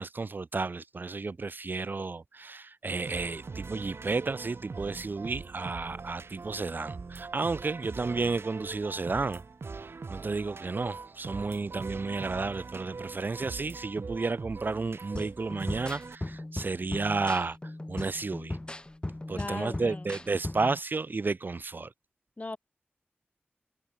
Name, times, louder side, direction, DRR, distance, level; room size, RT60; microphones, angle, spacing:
voice 1, 0.0-9.4 9.8-17.6 17.9-18.6 19.3-21.9, right 3 dB, 55° right, 0.3 m, -32 dB
sound 1, 3.1-16.2, right 4 dB, 90° right, 1.0 m, -42 dB
sound 2, 15.2-20.8, left 1 dB, 25° left, 0.7 m, -38 dB
voice 2, 19.3-20.1 22.4-22.6, left 2 dB, 40° left, 1.8 m, -37 dB
wide cardioid pair, 75°, 4 cm